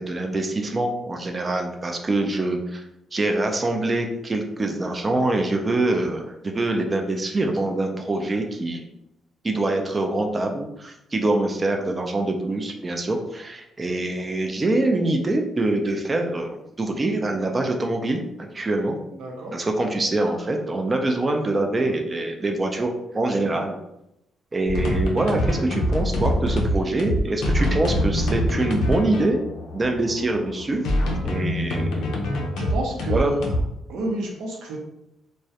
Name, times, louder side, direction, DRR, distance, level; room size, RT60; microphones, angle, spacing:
voice 1, 0.0-2.8 3.1-8.9 9.4-19.0 19.5-23.7 24.5-29.4 29.7-30.8 31.2-32.0 33.1-33.3, right 2 dB, 30° right, 3 dB, 0.4 m, -24 dB
voice 2, 19.1-19.6 19.9-20.0 23.3-23.5 32.5-33.4 33.9-34.8, right 2 dB, 80° right, 0 dB, 0.6 m, -30 dB
sound 1, 24.7-33.6, left 1 dB, 80° left, 0.5 m, -25 dB
2.2 x 2.0 x 2.7 m, 0.85 s
cardioid pair, 90°, 0 cm